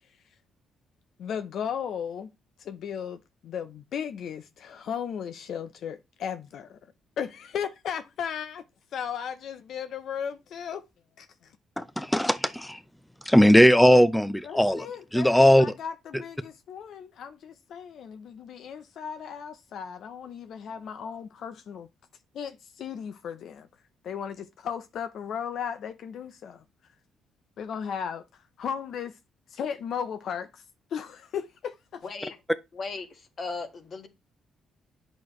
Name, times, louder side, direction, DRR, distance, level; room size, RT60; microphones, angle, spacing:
voice 1, 1.2-2.3 2.6-6.8 7.2-8.6 8.9-10.8 11.2-11.5 14.4-21.9 22.3-23.7 24.0-26.6 27.6-29.2 29.5-30.6 30.9-32.0, left 7 dB, 70° left, 0.6 m, -36 dB
voice 2, 11.8-12.8 13.3-14.9 15.1-15.7, equal, 5° left, 0.6 m, -19 dB
voice 3, 32.0-32.3 32.7-34.1, left 4 dB, 45° left, 1.6 m, -37 dB
8.7 x 6.2 x 3.1 m
cardioid pair, 90°, 0 cm